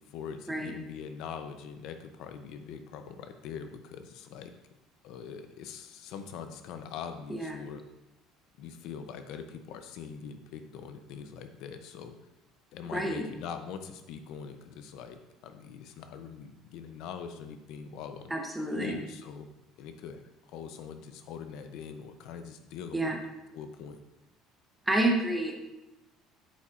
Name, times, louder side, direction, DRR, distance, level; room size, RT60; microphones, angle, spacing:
voice 1, 0.1-4.5 5.0-7.8 8.6-12.1 12.7-15.2 15.4-18.3 18.7-19.5 19.8-23.2 23.5-24.0, left 7 dB, 60° left, 8 dB, 0.6 m, -42 dB
voice 2, 12.9-13.3 18.3-19.0 22.9-23.2 24.9-25.5, right 1 dB, 5° right, 1 dB, 0.8 m, -29 dB
8.6 x 7.1 x 2.5 m, 0.98 s
cardioid pair, 175°, 0 cm